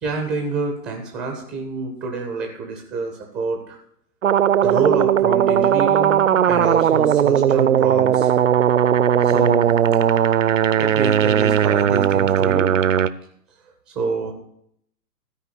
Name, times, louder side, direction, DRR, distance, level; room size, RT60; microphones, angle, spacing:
voice 1, 0.0-3.8 4.6-8.3 9.2-9.7 10.7-12.8 14.0-14.3, right 3 dB, ahead, 3 dB, 0.5 m, -27 dB
sound 1, 4.2-13.1, right 9 dB, 50° right, 0.5 m, -17 dB
13.0 x 4.8 x 8.3 m, 0.70 s
figure-of-eight pair, 120°, 49 cm